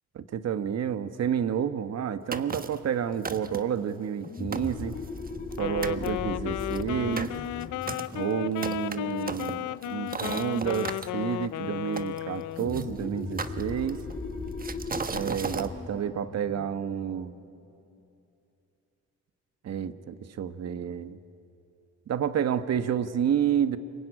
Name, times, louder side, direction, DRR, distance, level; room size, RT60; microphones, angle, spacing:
voice 1, 0.1-5.0 5.6-7.3 8.1-14.0 15.1-17.3 19.6-21.2 22.1-23.8, right 8 dB, 55° right, 11 dB, 1.3 m, -30 dB
sound 1, 2.3-2.9 3.2-3.8 4.2-4.3 4.5-5.6 5.8-6.1 6.6-11.1 12.0-12.8 13.4-14.1 14.6-15.7, right 4 dB, 30° right, 1.3 m, -36 dB
sound 2, 4.2-9.5 12.6-17.8, left 3 dB, 25° left, 4.8 m, -38 dB
Wind instrument woodwind instrument, 5.5-12.8, left 15 dB, 75° left, 0.6 m, -34 dB
26.0 x 22.5 x 10.0 m, 2.7 s
cardioid pair, 90°, 30 cm